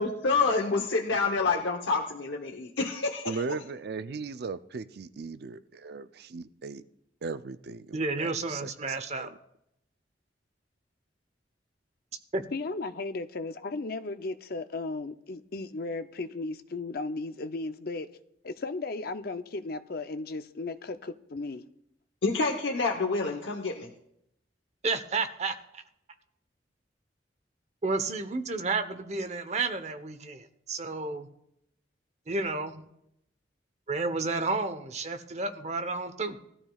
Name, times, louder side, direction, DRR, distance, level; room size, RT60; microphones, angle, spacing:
voice 1, 0.0-3.4 22.2-23.9, left 4 dB, 90° left, 1.0 m, -28 dB
voice 2, 3.3-6.8 7.2-9.3, right 4 dB, 60° right, 0.5 m, -38 dB
voice 3, 7.9-9.3 12.3-12.4 24.8-25.5 27.8-31.3 32.3-32.8 33.9-36.4, right 3 dB, 40° right, 0.9 m, -31 dB
voice 4, 12.5-18.1 18.4-21.6, left 3 dB, 55° left, 0.6 m, -35 dB
19.0 x 13.5 x 2.4 m
head